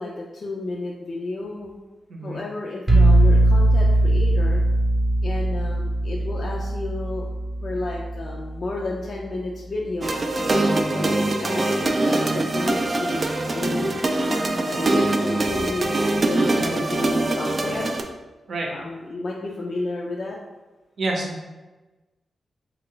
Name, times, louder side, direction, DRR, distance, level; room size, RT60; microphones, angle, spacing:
voice 1, 0.0-1.8 2.2-4.6 5.2-7.2 7.6-10.1 10.9-17.9 18.7-20.4, left 2 dB, 55° left, -2 dB, 0.4 m, -32 dB
voice 2, 2.1-2.4 10.6-10.9 16.5-16.9 18.5-18.7 21.0-21.5, right 2 dB, 70° right, -1 dB, 0.7 m, -30 dB
sound 1, 2.9-8.6, right 1 dB, 25° right, 0.7 m, -20 dB
sound 2, 10.0-18.0, right 2 dB, 40° right, 0.3 m, -23 dB
3.1 x 2.3 x 3.7 m, 1.2 s
cardioid pair, 75°, 0 cm